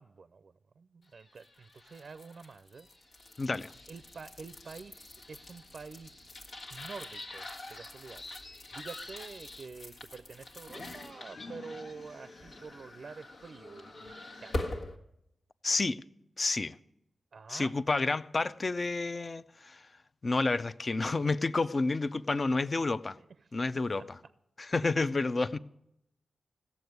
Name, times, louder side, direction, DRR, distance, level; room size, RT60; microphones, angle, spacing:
voice 1, 0.0-2.9 3.9-8.2 8.7-14.7 17.3-17.7 23.2-23.3 24.0-24.1 24.8-25.1, right 4 dB, 65° right, 0.5 m, -48 dB
sound 1, 1.3-15.0, left 1 dB, 85° left, 1.6 m, -44 dB
voice 2, 3.4-3.7 15.6-16.0 16.4-16.8 17.5-19.8 20.2-23.2 23.5-24.2 24.6-25.6, left 3 dB, 45° left, 0.5 m, -30 dB
16.0 x 7.0 x 9.3 m
cardioid pair, 55°, 0 cm